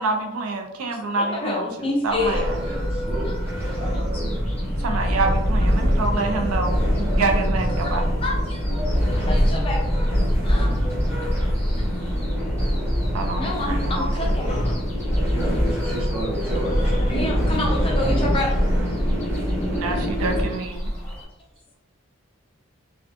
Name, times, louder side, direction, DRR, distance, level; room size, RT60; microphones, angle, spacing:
voice 1, 0.0-1.7 2.0-2.6 4.8-8.0 13.1-14.3 19.7-20.9, right 3 dB, 90° right, 4 dB, 0.4 m, -27 dB
voice 2, 1.1-2.9 3.3-3.4 3.8-4.0 7.8-8.8 9.2-10.0 10.4-10.7 13.3-14.8 17.1-18.6 21.0-21.1, left 2 dB, 25° left, -1 dB, 0.4 m, -29 dB
sound 1, 2.1-21.3, equal, 10° left, 0.8 m, -35 dB
sound 2, 2.2-20.5, equal, 10° right, 1.1 m, -23 dB
voice 3, 2.5-4.4 15.3-17.8 18.0-18.3, right 2 dB, 25° right, -3 dB, 0.6 m, -32 dB
2.5 x 2.2 x 2.5 m, 0.93 s
head